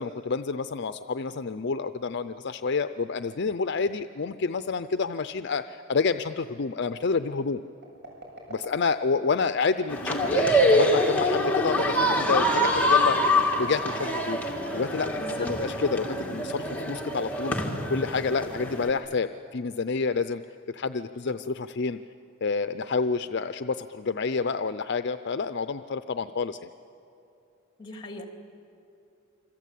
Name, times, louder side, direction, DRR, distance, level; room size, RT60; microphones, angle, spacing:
voice 1, 0.0-7.6 8.5-17.5 17.9-20.4 20.7-22.0 22.4-26.7, left 4 dB, 55° left, 11 dB, 0.5 m, -29 dB
sound 1, 7.8-9.2 10.8-11.9 13.5-15.1, right 2 dB, 55° right, 7.9 m, -44 dB
sound 2, 9.9-18.9, equal, 10° left, 2.2 m, -25 dB
voice 2, 15.1-15.5 27.8-28.2, left 1 dB, 25° left, 3 dB, 2.8 m, -39 dB
27.5 x 26.0 x 8.4 m, 2.8 s
head